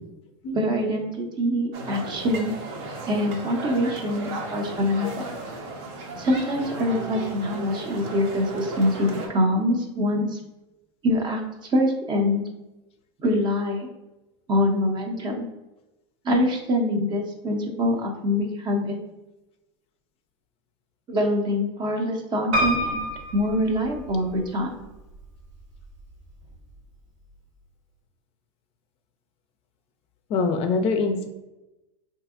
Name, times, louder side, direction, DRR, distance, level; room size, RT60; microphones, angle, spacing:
voice 1, 0.5-2.5 3.1-5.3 6.2-10.4 11.0-11.4 11.7-12.4 13.2-13.9 14.5-15.5 16.2-19.0 21.1-23.1 23.3-24.8, left 1 dB, 30° right, 3 dB, 0.5 m, -24 dB
sound 1, 1.7-9.3, right 2 dB, 60° right, 0.7 m, -35 dB
Piano, 22.5-24.5 25.1-25.8 26.2-26.3 26.5-26.6, equal, 80° right, 1.0 m, -27 dB
voice 2, 30.3-31.3, left 4 dB, 40° left, 6 dB, 0.4 m, -23 dB
3.2 x 2.7 x 2.4 m, 1.0 s
supercardioid pair, 120°, 16 cm